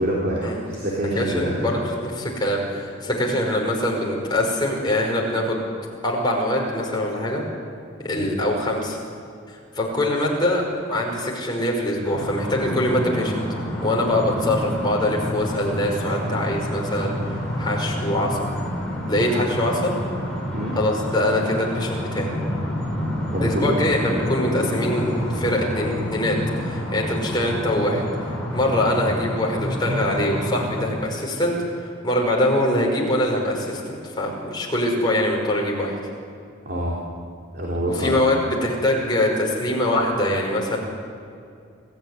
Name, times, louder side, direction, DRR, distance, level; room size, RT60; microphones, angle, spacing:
voice 1, 0.0-1.8 8.1-8.4 20.5-20.8 23.3-23.8 36.7-37.0 37.5-38.3, right 1 dB, 45° right, -3 dB, 3.5 m, -26 dB
voice 2, 1.1-5.6 6.0-7.4 8.0-9.0 9.5-13.4 13.8-17.1 17.6-18.4 19.1-19.9 20.8-22.3 23.4-28.0 28.5-36.0 37.9-40.8, left 1 dB, 20° left, -1 dB, 5.4 m, -23 dB
sound 1, 12.0-30.8, equal, 5° left, 5.8 m, -28 dB
26.5 x 16.0 x 9.8 m, 2.4 s
head